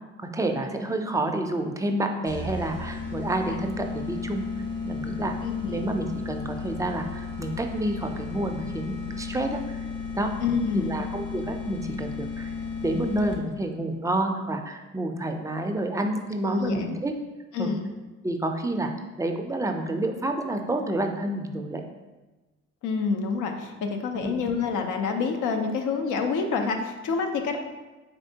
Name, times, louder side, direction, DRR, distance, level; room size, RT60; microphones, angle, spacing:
voice 1, 0.2-4.4 4.8-5.4 5.7-9.9 10.2-10.3 10.7-12.5 12.8-17.1 17.6-17.7 18.2-18.9 19.2-21.8 24.1-24.4, right 1 dB, 10° right, 4 dB, 0.3 m, -29 dB
sound 1, 2.3-13.7, left 4 dB, 35° left, 0.9 m, -34 dB
voice 2, 5.4-5.9 10.4-11.0 16.4-17.0 17.5-17.9 22.8-27.6, left 5 dB, 80° left, 5 dB, 0.6 m, -27 dB
4.3 x 3.4 x 2.7 m, 1.2 s
cardioid pair, 90°, 30 cm